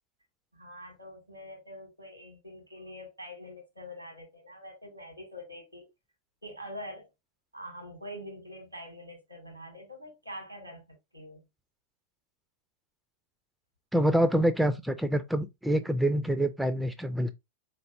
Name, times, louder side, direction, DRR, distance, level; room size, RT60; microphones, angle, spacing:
voice 1, 0.5-5.9 6.4-7.1 7.5-10.8 11.1-11.4, equal, 90° right, 1.8 m, -44 dB
voice 2, 13.9-17.3, right 1 dB, 5° right, 0.4 m, -26 dB
4.0 x 3.3 x 2.6 m
figure-of-eight pair, 90°, 0 cm